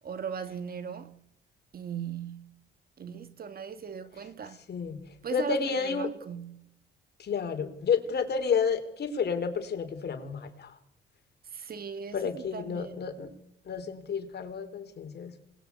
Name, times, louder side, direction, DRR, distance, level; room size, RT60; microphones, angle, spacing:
voice 1, 0.0-1.2 1.7-2.5 3.0-4.6 5.2-6.7 11.5-13.0, right 7 dB, 50° right, 1.9 m, -38 dB
voice 2, 4.7-5.0 5.3-6.1 7.2-10.7 12.1-13.3 13.7-15.3, left 6 dB, 55° left, 4.1 m, -30 dB
27.5 x 21.0 x 8.5 m
cardioid pair, 90°, 20 cm